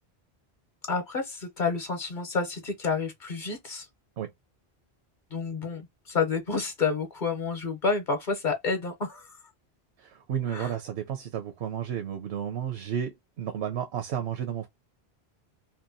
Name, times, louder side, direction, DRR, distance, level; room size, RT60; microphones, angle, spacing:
voice 1, 0.9-3.9 5.3-9.3 10.5-10.7, left 4 dB, 50° left, 0.8 m, -29 dB
voice 2, 10.0-14.7, right 9 dB, 80° right, 0.9 m, -32 dB
2.9 x 2.2 x 2.5 m
omnidirectional pair, 1.1 m